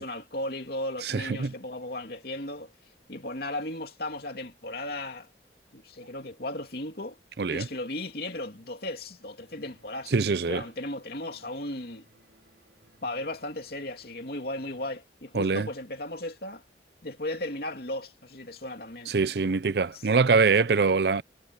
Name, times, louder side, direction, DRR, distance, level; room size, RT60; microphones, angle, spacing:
voice 1, 0.0-2.7 3.1-5.3 5.7-7.2 7.5-10.2 10.5-12.1 13.0-16.6 17.0-19.1 19.9-20.0, left 1 dB, 55° left, 2.9 m, -36 dB
voice 2, 1.0-1.5 7.4-7.7 10.1-10.6 15.3-15.7 19.1-21.2, right 4 dB, 60° right, 0.6 m, -24 dB
sound 1, 9.4-15.0, right 1 dB, 90° right, 5.2 m, -63 dB
head